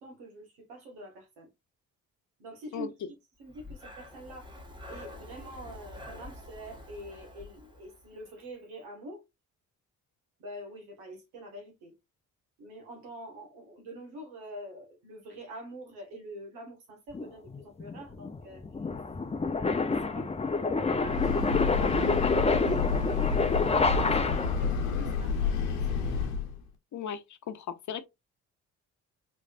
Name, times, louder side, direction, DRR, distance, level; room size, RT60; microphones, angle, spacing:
voice 1, 0.0-1.5 2.4-2.9 3.4-4.5 4.9-9.2 10.4-11.9 12.6-18.6 19.5-20.3 20.7-22.4 22.7-26.2, right 1 dB, 85° right, 1.6 m, -45 dB
Breathing, 3.4-8.4, left 2 dB, 10° right, 1.3 m, -47 dB
sound 1, 17.1-24.7, left 4 dB, 15° left, 0.6 m, -28 dB
Breathing / Train, 20.8-26.6, left 5 dB, 85° left, 0.9 m, -29 dB
voice 2, 26.9-28.0, left 8 dB, 50° left, 0.8 m, -37 dB
3.9 x 3.2 x 2.4 m
hypercardioid pair, 55°, 39 cm